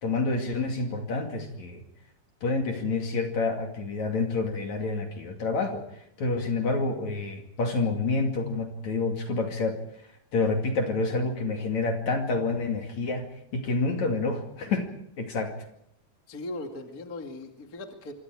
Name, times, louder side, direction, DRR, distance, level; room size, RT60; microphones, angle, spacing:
voice 1, 0.0-1.8 2.4-5.8 6.2-9.8 10.3-13.3 13.5-15.6, left 3 dB, 45° left, 3 dB, 3.1 m, -28 dB
voice 2, 16.3-18.1, left 2 dB, 30° left, 3 dB, 1.8 m, -38 dB
26.5 x 25.5 x 4.8 m, 0.73 s
omnidirectional pair, 5.2 m